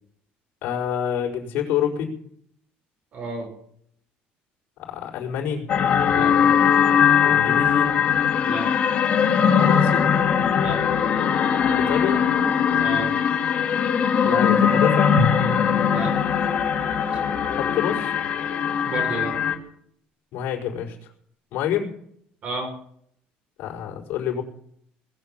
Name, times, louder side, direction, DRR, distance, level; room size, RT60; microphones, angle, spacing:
voice 1, 0.6-2.1 4.8-5.6 7.2-7.9 9.6-10.0 11.7-12.2 14.2-15.2 17.5-18.1 20.3-21.1 21.5-21.9 23.6-24.4, left 9 dB, 65° left, -2 dB, 5.0 m, -27 dB
voice 2, 3.1-3.5 6.1-6.4 8.4-8.7 10.6-10.8 12.8-13.1 15.9-16.1 18.8-19.4 22.4-22.7, right 3 dB, 40° right, 1 dB, 5.7 m, -31 dB
sound 1, 5.7-19.5, left 8 dB, 40° left, 2.6 m, -20 dB
Drum, 15.2-17.6, right 1 dB, 70° right, 1.9 m, -31 dB
20.5 x 7.7 x 9.0 m, 0.67 s
cardioid pair, 160°, 4 cm